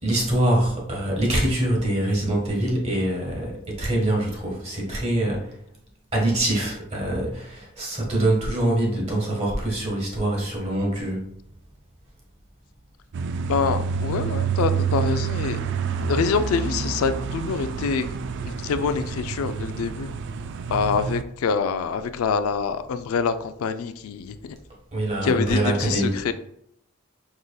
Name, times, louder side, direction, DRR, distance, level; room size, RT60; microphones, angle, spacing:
voice 1, 0.0-5.5 6.1-11.3 24.9-26.2, right 1 dB, 30° right, -2 dB, 1.4 m, -24 dB
sound 1, 13.1-21.2, right 6 dB, 55° right, 0.3 m, -28 dB
voice 2, 13.5-15.6 16.0-18.1 18.4-20.1 20.7-24.6 25.2-26.3, left 5 dB, 80° left, 11 dB, 0.3 m, -25 dB
4.9 x 3.9 x 2.3 m, 0.73 s
head